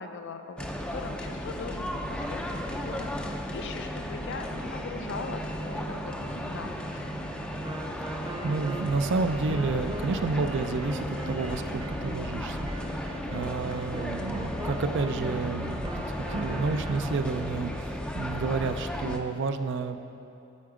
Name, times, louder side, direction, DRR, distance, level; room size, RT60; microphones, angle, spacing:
voice 1, 0.0-7.0 13.3-13.7, left 4 dB, 55° left, 7 dB, 0.5 m, -41 dB
sound 1, 0.6-19.2, equal, 5° left, 0.4 m, -34 dB
Wind instrument woodwind instrument, 7.6-17.5, right 1 dB, 25° right, 0.8 m, -41 dB
voice 2, 8.2-12.7 13.0-20.0, right 4 dB, 60° right, 9 dB, 0.4 m, -30 dB
8.6 x 7.8 x 4.9 m, 2.8 s
head